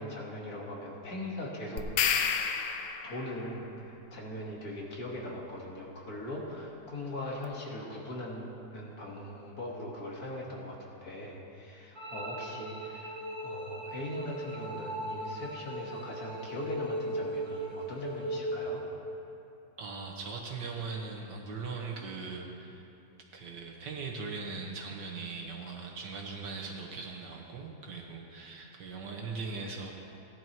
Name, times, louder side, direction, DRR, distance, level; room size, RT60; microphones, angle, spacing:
voice 1, 0.0-1.9 3.0-18.8, left 1 dB, 55° left, -2 dB, 2.1 m, -40 dB
sound 1, 1.8-3.4, left 7 dB, 80° left, 1.3 m, -29 dB
sound 2, 12.0-18.9, right 1 dB, 25° right, 1.3 m, -38 dB
voice 2, 19.8-22.8 23.3-29.9, right 4 dB, 75° right, 0 dB, 1.9 m, -40 dB
17.0 x 11.0 x 3.0 m, 2.8 s
omnidirectional pair, 1.9 m